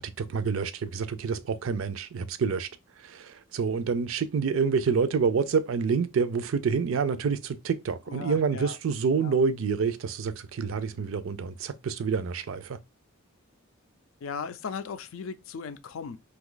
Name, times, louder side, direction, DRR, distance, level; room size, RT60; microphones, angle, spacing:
voice 1, 0.0-2.7 3.0-12.8, right 5 dB, 70° right, 0.4 m, -27 dB
voice 2, 8.1-8.8 9.2-9.4 14.2-16.2, left 5 dB, 75° left, 0.4 m, -37 dB
2.6 x 2.3 x 3.7 m
head